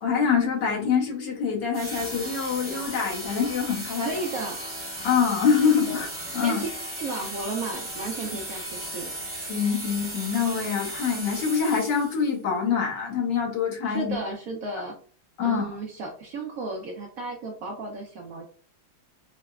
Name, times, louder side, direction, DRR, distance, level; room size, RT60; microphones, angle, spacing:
voice 1, 0.0-4.1 5.0-6.6 9.5-14.2 15.4-15.7, left 6 dB, 70° left, -1 dB, 1.6 m, -25 dB
sound 1, 1.7-12.3, right 1 dB, 10° right, 0.6 m, -36 dB
voice 2, 4.0-4.6 5.6-6.0 6.4-6.7 7.0-9.1 13.8-15.0 15.4-18.4, right 3 dB, 70° right, 1 dB, 0.8 m, -34 dB
4.8 x 2.1 x 2.3 m, 0.43 s
omnidirectional pair, 2.0 m